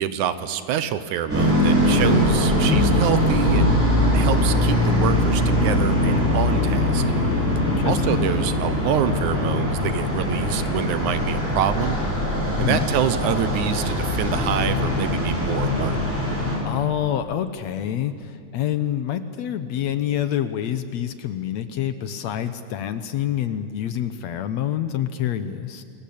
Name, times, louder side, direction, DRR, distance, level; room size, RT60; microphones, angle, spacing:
voice 1, 0.0-3.9 4.1-7.0 7.9-12.0 12.6-16.0, right 9 dB, 75° right, 12 dB, 2.4 m, -26 dB
sound 1, 1.3-16.6, left 1 dB, 5° right, 6.5 m, -21 dB
voice 2, 7.6-8.3 12.6-12.9 16.7-25.8, left 10 dB, 70° left, 11 dB, 1.9 m, -27 dB
28.5 x 21.5 x 8.6 m, 2.6 s
omnidirectional pair, 3.7 m